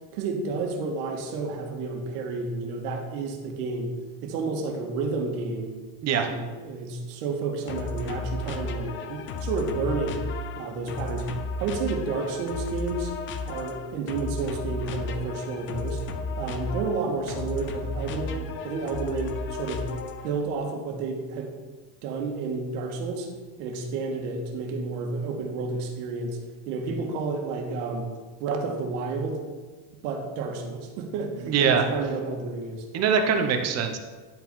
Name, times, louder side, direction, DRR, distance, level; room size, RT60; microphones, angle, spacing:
voice 1, 0.0-3.9 4.2-5.7 6.1-10.2 10.6-11.3 11.6-13.1 13.4-16.0 16.4-19.9 20.2-21.5 22.0-23.3 23.6-26.4 26.7-28.1 28.4-29.4 30.0-32.9, right 4 dB, 80° right, 2 dB, 1.9 m, -31 dB
sound 1, 7.7-20.4, left 3 dB, 25° left, 0.5 m, -34 dB
voice 2, 31.5-31.8 32.9-34.0, right 6 dB, 35° right, 5 dB, 1.0 m, -22 dB
10.5 x 5.2 x 5.5 m, 1.3 s
cardioid pair, 165°, 47 cm